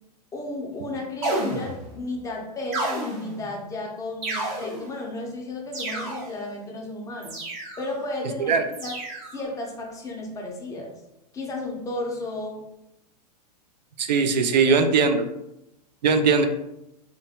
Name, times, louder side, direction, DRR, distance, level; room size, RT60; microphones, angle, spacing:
voice 1, 0.3-7.4 7.8-9.0 9.3-10.9 11.3-12.7, left 2 dB, 15° left, 0 dB, 0.6 m, -33 dB
sound 1, 1.2-2.0 2.7-3.5 4.2-5.0 5.7-6.5 7.2-8.0 8.7-9.4, right 2 dB, 45° right, 0.9 m, -31 dB
voice 2, 14.0-15.3 16.0-16.5, right 5 dB, 90° right, 7 dB, 0.4 m, -20 dB
2.5 x 2.2 x 2.7 m, 0.86 s
hypercardioid pair, 115°, 21 cm